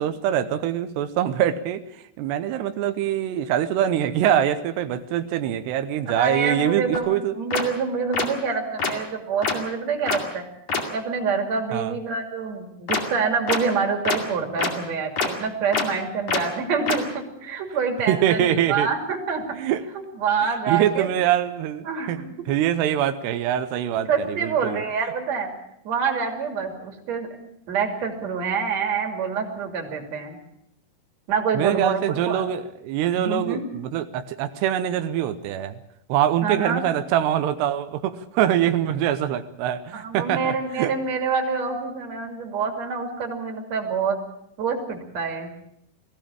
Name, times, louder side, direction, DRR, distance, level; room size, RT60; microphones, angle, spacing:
voice 1, 0.0-1.8 2.2-7.4 11.7-11.9 18.1-18.9 19.5-19.8 20.7-22.2 22.5-24.8 31.5-35.8 36.1-40.9, right 11 dB, 90° right, 10 dB, 3.0 m, -24 dB
voice 2, 6.1-10.4 10.9-19.5 20.2-21.1 21.9-22.3 24.1-25.5 25.9-27.3 27.7-30.4 31.3-32.5 33.2-33.6 36.4-36.8 39.9-44.2 44.6-45.5, right 5 dB, 45° right, 3 dB, 3.7 m, -26 dB
sound 1, 6.9-7.0 7.5-7.6 8.1-8.2 8.8-8.9 9.4-9.5 10.1-10.2 10.7-10.8 12.9-13.0 13.5-13.6 14.0-14.2 14.6-14.7 15.2-15.3 15.7-15.8 16.3-16.4 16.9-17.0, left 4 dB, 45° left, 3.2 m, -23 dB
19.5 x 15.5 x 8.7 m, 0.78 s
omnidirectional pair, 4.7 m